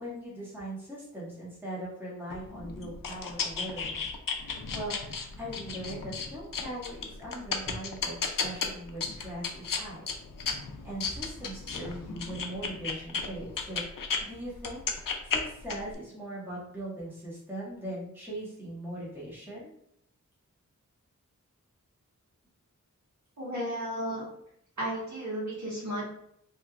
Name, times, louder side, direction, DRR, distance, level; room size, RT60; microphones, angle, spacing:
voice 1, 0.0-4.0 4.4-10.0 10.4-13.8 14.2-19.7, right 1 dB, 5° right, -7 dB, 1.3 m, -40 dB
sound 1, 2.3-14.2 14.6-15.9, left 5 dB, 75° left, 0.5 m, -34 dB
voice 2, 23.4-24.2 24.8-26.1, equal, 60° right, -7 dB, 1.5 m, -33 dB
3.3 x 2.9 x 2.3 m, 0.73 s
wide cardioid pair, 75°, 33 cm